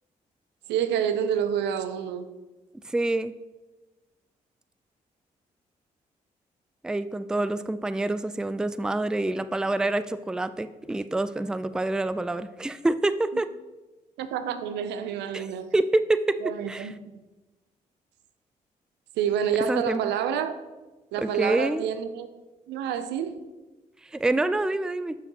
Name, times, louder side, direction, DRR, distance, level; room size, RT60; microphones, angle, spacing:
voice 1, 0.7-2.3 13.3-13.4 14.2-15.7 16.4-16.9 19.2-20.6 21.1-22.3 22.7-23.4, right 8 dB, 80° right, 11 dB, 0.5 m, -28 dB
voice 2, 2.9-3.3 6.8-13.5 15.3-15.5 15.7-16.4 16.7-16.9 19.7-20.0 21.2-21.8 24.1-25.2, right 2 dB, 5° right, 13 dB, 0.3 m, -26 dB
7.1 x 6.6 x 2.9 m, 1.1 s
hypercardioid pair, 45°, 18 cm